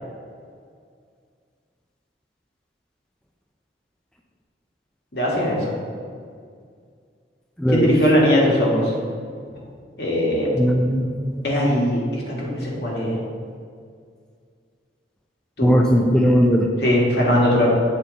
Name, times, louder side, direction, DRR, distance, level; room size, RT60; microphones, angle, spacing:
voice 1, 5.1-5.7 7.7-8.9 10.0-10.5 11.4-13.2 15.6-15.8 16.8-17.7, equal, 65° left, -3 dB, 1.7 m, -20 dB
voice 2, 7.6-7.9 10.5-11.6 15.6-16.7, equal, 5° left, 0 dB, 0.3 m, -18 dB
8.2 x 4.3 x 3.9 m, 2.1 s
head